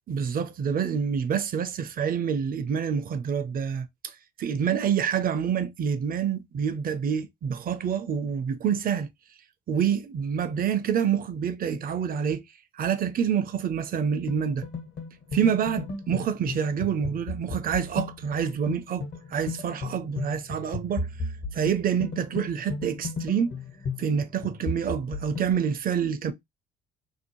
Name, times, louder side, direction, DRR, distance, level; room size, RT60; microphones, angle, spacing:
voice 1, 0.1-9.1 9.7-12.4 12.8-14.7 15.3-21.1 21.5-23.6 24.0-26.3, right 7 dB, 45° right, 0.5 m, -27 dB
sound 1, 14.3-25.5, left 3 dB, 65° left, 1.2 m, -35 dB
2.7 x 2.1 x 2.9 m
hypercardioid pair, 55°, 21 cm